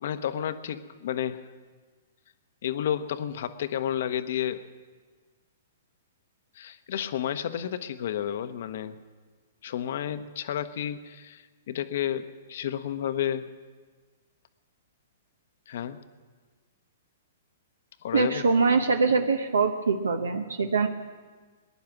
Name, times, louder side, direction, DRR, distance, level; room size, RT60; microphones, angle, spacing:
voice 1, 0.0-1.4 2.6-4.6 6.5-9.0 9.6-13.5 15.7-16.0 18.0-18.4, left 10 dB, 60° left, 12 dB, 0.9 m, -31 dB
voice 2, 18.1-20.9, right 4 dB, 80° right, 7 dB, 0.8 m, -23 dB
19.5 x 10.5 x 6.0 m, 1.4 s
hypercardioid pair, 115°, 0 cm